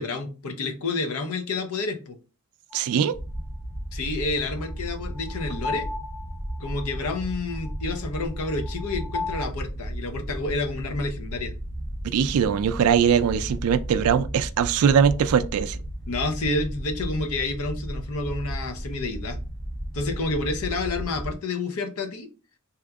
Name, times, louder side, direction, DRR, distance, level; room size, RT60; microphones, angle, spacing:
voice 1, 0.0-2.2 3.9-5.9 6.6-11.5 16.1-19.4 19.9-22.3, left 3 dB, 70° left, 0.6 m, -29 dB
sound 1, 2.7-2.8 4.6-9.5, left 4 dB, 35° left, 1.0 m, -36 dB
voice 2, 2.7-3.1 12.0-15.8, right 7 dB, 70° right, 0.3 m, -21 dB
sound 2, 3.1-21.3, right 1 dB, 5° left, 0.4 m, -34 dB
3.4 x 2.8 x 2.3 m
head